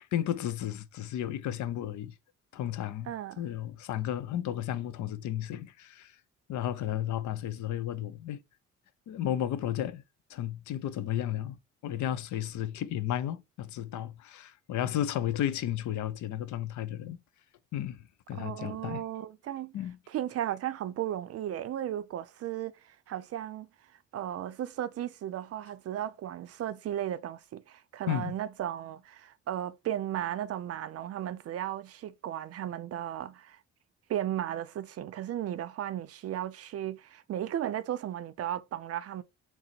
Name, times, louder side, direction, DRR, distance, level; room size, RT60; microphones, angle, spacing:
voice 1, 0.1-2.1 2.5-6.2 6.5-8.4 9.1-10.0 10.3-11.6 11.8-17.2 17.7-19.0 19.7-20.0 28.1-28.3, left 11 dB, 75° left, 0.6 m, -33 dB
voice 2, 3.1-3.4 18.3-19.7 20.1-23.7 24.1-33.6 34.1-39.2, right 11 dB, 55° right, 0.5 m, -35 dB
3.8 x 2.0 x 4.2 m
cardioid pair, 90°, 30 cm